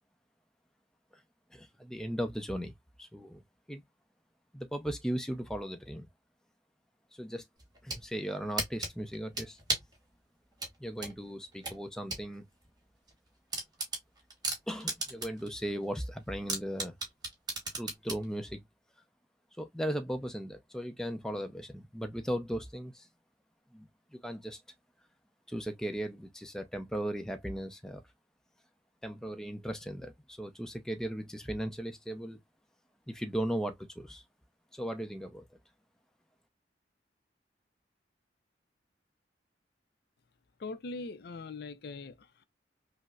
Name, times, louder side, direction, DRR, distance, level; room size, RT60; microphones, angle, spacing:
voice 1, 1.5-3.4 3.7-3.8 4.5-6.1 7.1-7.4 7.8-9.6 10.8-12.4 14.7-16.9 17.8-18.6 19.6-23.1 23.7-24.6 25.5-28.0 29.0-32.4 33.1-34.2 34.7-35.4, equal, 5° left, 0.5 m, -37 dB
sound 1, 7.6-8.0 8.6-10.0 10.6-12.3 12.6-12.7 13.1-13.2 13.5-15.5 15.8-15.9 16.5-18.2, right 2 dB, 25° right, 1.2 m, -35 dB
voice 2, 40.6-42.4, left 3 dB, 65° left, 0.4 m, -41 dB
5.2 x 2.0 x 2.3 m
head